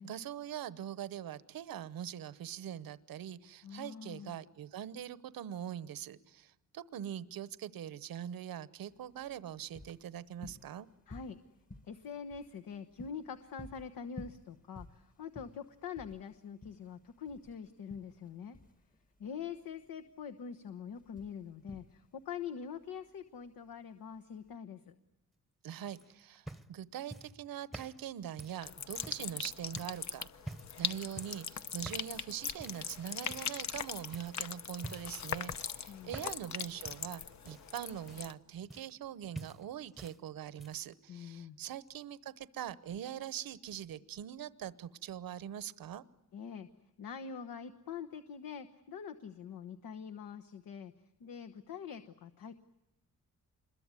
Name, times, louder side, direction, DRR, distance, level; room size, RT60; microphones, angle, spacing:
voice 1, 0.0-10.9 25.6-46.0, right 10 dB, 85° right, 1.0 m, -43 dB
voice 2, 3.6-4.4 11.1-11.4 11.9-18.6 19.2-24.9 35.9-36.1 41.1-41.6 46.3-46.7 47.0-50.9 51.2-52.5, left 7 dB, 85° left, 1.2 m, -44 dB
sound 1, 8.9-24.5, left 1 dB, 25° left, 1.3 m, -54 dB
sound 2, 25.9-29.3 29.8-30.0 30.4-30.8 31.2-31.5 31.8-32.1 32.6-32.9 33.3-33.8 34.1-34.4 34.8-35.2 35.5-36.5 36.8-39.1 39.3-40.2 40.4-40.9 41.9-42.0, right 1 dB, ahead, 0.9 m, -48 dB
sound 3, 28.6-38.3, left 7 dB, 55° left, 0.9 m, -41 dB
26.5 x 22.0 x 9.7 m
wide cardioid pair, 130°, 34 cm